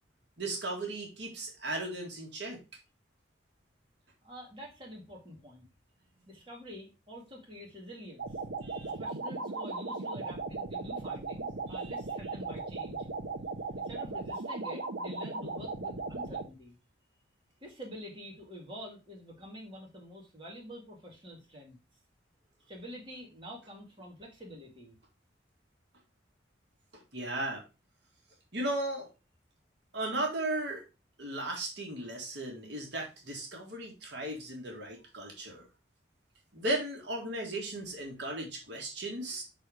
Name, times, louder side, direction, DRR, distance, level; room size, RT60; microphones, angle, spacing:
voice 1, 0.4-2.6 8.6-8.9 11.7-11.9 26.9-27.6 28.5-29.1 29.9-30.9 31.2-35.7 36.5-39.4, right 1 dB, 65° right, 0 dB, 2.0 m, -36 dB
voice 2, 4.2-5.7 6.3-8.4 8.9-13.1 13.7-16.8 17.6-21.8 22.7-25.0, equal, 25° right, -3 dB, 2.1 m, -47 dB
sound 1, 8.2-16.5, right 3 dB, 85° right, 1.0 m, -37 dB
6.0 x 4.2 x 4.8 m, 0.28 s
head